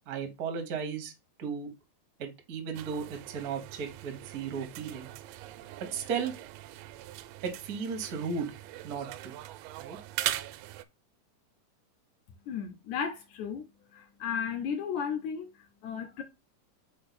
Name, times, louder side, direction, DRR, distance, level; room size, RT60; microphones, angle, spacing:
voice 1, 0.1-1.1 1.4-1.7 2.2-5.1 5.9-6.3 7.4-8.5 8.8-9.4 9.8-10.0, right 6 dB, 55° right, 1.0 m, -35 dB
sound 1, 2.7-10.8, right 15 dB, 90° right, 2.2 m, -41 dB
voice 2, 12.5-13.6 13.9-16.2, left 7 dB, 70° left, 2.0 m, -34 dB
5.2 x 4.5 x 4.1 m
omnidirectional pair, 3.9 m